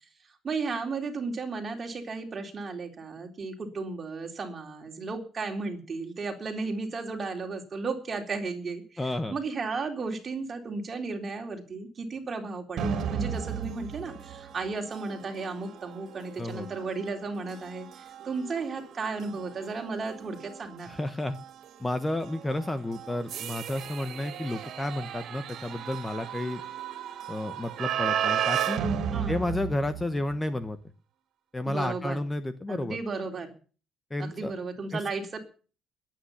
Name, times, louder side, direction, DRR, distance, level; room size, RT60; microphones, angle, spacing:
voice 1, 0.4-20.9 29.1-29.4 31.7-32.2 32.7-33.5 34.2-35.4, right 4 dB, 30° right, 3 dB, 3.8 m, -34 dB
voice 2, 9.0-9.4 16.4-16.7 20.9-21.4 21.8-26.6 27.3-28.8 29.3-30.8 31.5-33.0 34.1-34.5 34.9-35.0, left 1 dB, 10° left, 11 dB, 1.0 m, -31 dB
sound 1, 12.8-30.5, right 8 dB, 55° right, 2.8 m, -35 dB
21.5 x 9.2 x 7.1 m, 0.39 s
cardioid pair, 155°, 0 cm